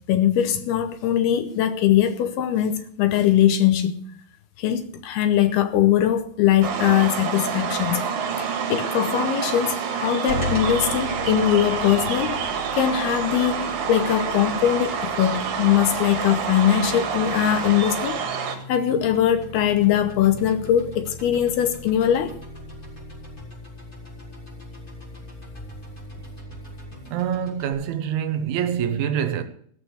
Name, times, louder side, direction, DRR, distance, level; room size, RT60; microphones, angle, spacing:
voice 1, 0.1-4.1 4.6-8.0 8.4-22.4, left 10 dB, 75° left, 2.4 m, -21 dB
sound 1, 6.6-18.6, right 6 dB, 65° right, 3.5 m, -27 dB
sound 2, 10.3-27.7, left 2 dB, 10° left, 4.1 m, -38 dB
voice 2, 27.1-29.4, right 9 dB, 85° right, 3.4 m, -25 dB
15.0 x 6.7 x 7.8 m
omnidirectional pair, 5.3 m